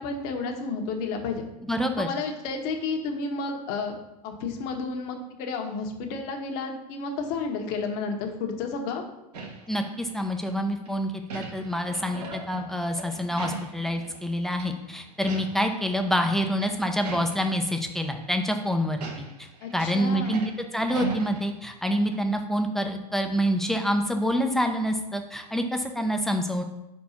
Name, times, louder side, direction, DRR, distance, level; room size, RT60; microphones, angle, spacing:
voice 1, 0.0-1.5 2.0-3.9 4.2-9.0 19.6-20.4, left 4 dB, 45° left, 3 dB, 1.3 m, -31 dB
voice 2, 1.7-2.1 9.7-19.5 19.7-20.4 20.7-26.6, equal, ahead, 4 dB, 0.6 m, -27 dB
sound 1, 9.3-10.5 10.9-14.3 14.5-14.7 15.1-15.8 16.0-17.8 18.2-18.4 18.9-21.9 22.1-22.2, right 5 dB, 75° right, 1.7 m, -39 dB
4.6 x 4.4 x 5.8 m, 0.90 s
hypercardioid pair, 120°, 21 cm